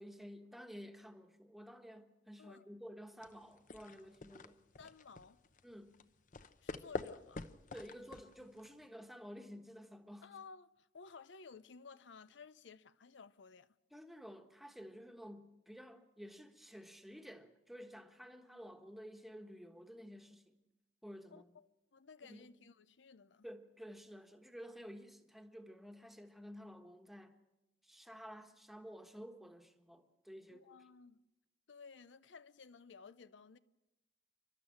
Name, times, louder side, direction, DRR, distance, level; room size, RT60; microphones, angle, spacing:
voice 1, 0.0-4.6 5.6-5.9 7.7-10.3 13.9-20.5 21.0-21.5 22.3-22.5 23.4-27.4 27.8-30.8, equal, ahead, 1.3 m, -52 dB
sound 1, 3.2-8.8, left 3 dB, 45° left, 0.8 m, -47 dB
voice 2, 4.8-5.4 6.6-7.4 10.2-13.7 21.3-23.5 30.5-31.2 31.7-33.6, left 5 dB, 85° left, 0.6 m, -56 dB
29.0 x 12.0 x 8.6 m
head